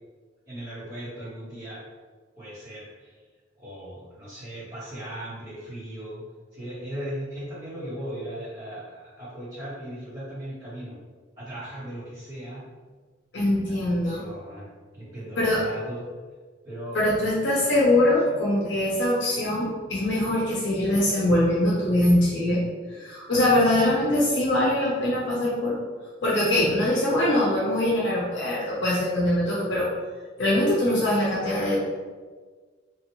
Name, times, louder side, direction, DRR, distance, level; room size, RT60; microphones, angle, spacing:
voice 1, 0.4-1.8 2.3-3.1 3.6-6.2 6.5-11.0 11.4-12.6 13.6-13.7 14.0-16.0 16.6-17.0 18.2-18.4, right 1 dB, 30° right, -16 dB, 1.4 m, -38 dB
voice 2, 13.3-14.2 15.4-15.6 16.9-22.6 22.9-25.7 26.2-29.9 30.4-31.8, left 1 dB, 60° left, -6 dB, 0.6 m, -23 dB
3.0 x 2.5 x 2.9 m, 1.5 s
head